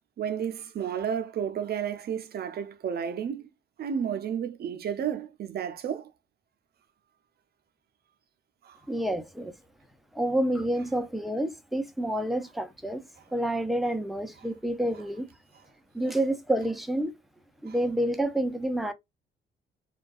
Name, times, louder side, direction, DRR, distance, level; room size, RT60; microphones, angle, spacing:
voice 1, 0.2-3.5 3.8-6.1 8.6-8.8 17.7-17.8, right 8 dB, 55° right, 0.5 m, -32 dB
voice 2, 8.9-9.5 10.1-15.3 15.9-17.1 17.6-18.9, right 1 dB, ahead, 0.5 m, -28 dB
2.3 x 2.2 x 2.4 m
cardioid pair, 90°, 20 cm